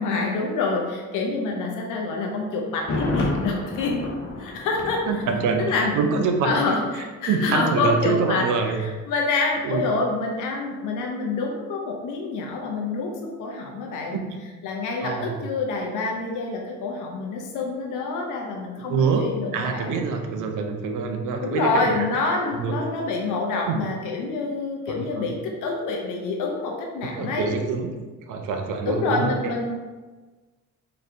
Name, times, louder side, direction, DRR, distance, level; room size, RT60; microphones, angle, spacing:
voice 1, 0.0-4.0 4.4-5.2 5.6-5.9 6.4-14.2 14.6-20.0 21.4-27.5 28.8-29.7, left 3 dB, 90° left, 0 dB, 0.7 m, -27 dB
Thunder, 2.7-6.6 6.9-7.0, left 2 dB, 50° left, 1.1 m, -31 dB
voice 2, 5.1-6.5 7.3-8.8 9.6-9.9 14.1-14.4 15.0-15.4 18.8-22.1 22.5-22.7 23.7-23.8 24.9-25.3 27.2-27.9 28.3-29.5, right 5 dB, 85° right, 4 dB, 0.6 m, -25 dB
4.1 x 3.2 x 2.6 m, 1.3 s
cardioid pair, 90°, 30 cm